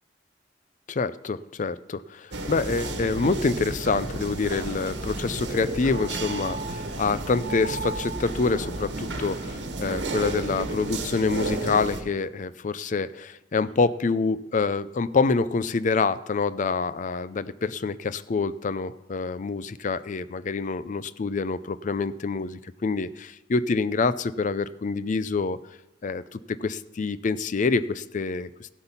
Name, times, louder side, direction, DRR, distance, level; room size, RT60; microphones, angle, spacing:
voice 1, 0.9-25.6 26.0-28.7, left 4 dB, 45° left, 15 dB, 0.5 m, -26 dB
sound 1, 2.3-12.0, right 2 dB, 75° right, 1.5 m, -32 dB
15.5 x 8.1 x 5.6 m, 0.98 s
head